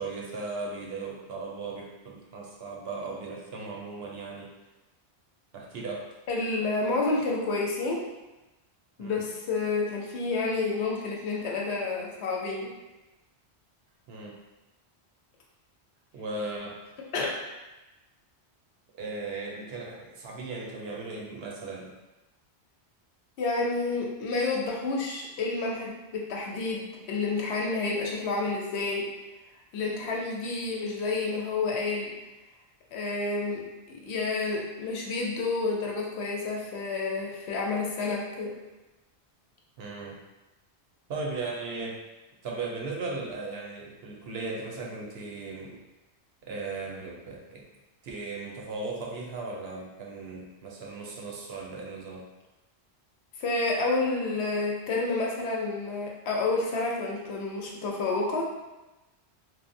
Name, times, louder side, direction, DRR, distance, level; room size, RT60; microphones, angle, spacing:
voice 1, 0.0-4.5 5.5-6.1 9.0-9.2 14.1-14.4 16.1-16.8 19.0-21.9 39.8-40.2 41.1-42.0 42.4-45.8 46.4-47.6 48.0-52.3, right 3 dB, 75° right, -2 dB, 0.8 m, -37 dB
voice 2, 6.3-8.0 9.0-12.7 17.1-17.4 23.4-29.1 29.7-32.1 32.9-33.6 33.9-38.5 53.4-58.4, left 3 dB, 85° left, -2 dB, 0.9 m, -29 dB
3.1 x 2.0 x 2.5 m, 1.0 s
omnidirectional pair, 1.1 m